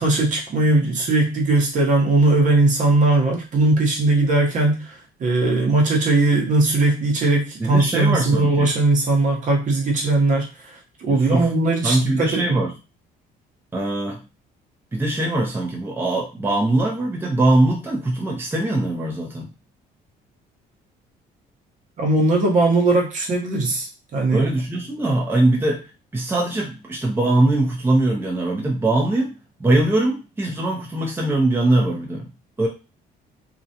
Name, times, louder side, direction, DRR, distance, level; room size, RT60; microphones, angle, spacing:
voice 1, 0.0-10.5 11.0-12.6 22.0-24.5, right 2 dB, 50° right, 0 dB, 0.9 m, -19 dB
voice 2, 7.6-8.7 11.1-11.5 11.8-12.7 13.7-14.2 14.9-19.5 24.3-25.8 26.1-29.3 29.6-32.3 32.6-32.7, right 2 dB, 15° right, -2 dB, 0.5 m, -21 dB
2.4 x 2.1 x 2.7 m, 0.30 s
cardioid pair, 110°, 17 cm